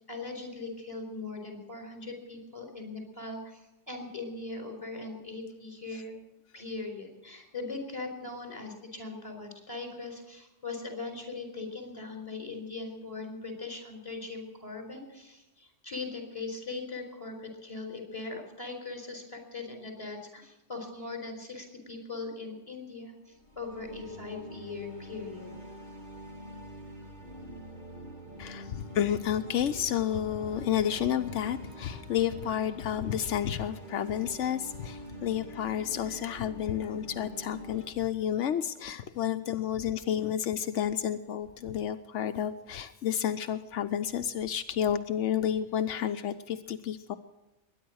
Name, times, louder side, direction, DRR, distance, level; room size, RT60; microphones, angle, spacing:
voice 1, 0.1-6.1 6.5-25.6, left 3 dB, 30° left, 3 dB, 4.4 m, -40 dB
sound 1, 23.3-37.9, right 1 dB, 40° right, 3.0 m, -46 dB
voice 2, 28.4-47.2, left 9 dB, 85° left, 7 dB, 1.1 m, -31 dB
21.5 x 10.0 x 6.3 m, 1.0 s
omnidirectional pair, 1.2 m